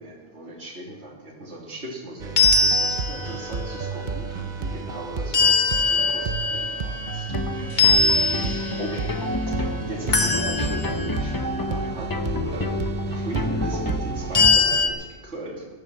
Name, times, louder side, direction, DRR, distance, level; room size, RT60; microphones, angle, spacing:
voice 1, 0.0-8.1 8.3-9.2 9.4-12.7 13.1-15.6, right 1 dB, 70° right, -2 dB, 2.9 m, -38 dB
sound 1, 2.2-14.8, right 4 dB, 45° right, 1.0 m, -32 dB
sound 2, 2.4-3.5 5.3-7.4 7.8-9.0 10.1-11.2 14.3-14.9, left 4 dB, 40° left, 1.4 m, -21 dB
sound 3, 7.3-14.6, left 2 dB, 20° left, 0.7 m, -29 dB
14.0 x 11.5 x 7.3 m, 1.4 s
omnidirectional pair, 1.2 m